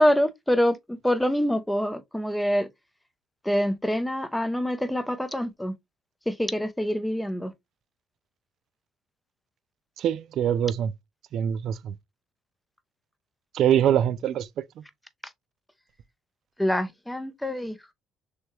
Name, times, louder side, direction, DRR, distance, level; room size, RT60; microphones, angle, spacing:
voice 1, 0.0-2.7 3.4-5.7 6.3-7.5 16.6-17.9, equal, 5° left, 0.6 m, -25 dB
voice 2, 10.0-10.9 11.3-11.9 13.5-14.5, right 10 dB, 60° right, 0.4 m, -23 dB
6.4 x 2.3 x 3.0 m
cardioid pair, 140°, 0 cm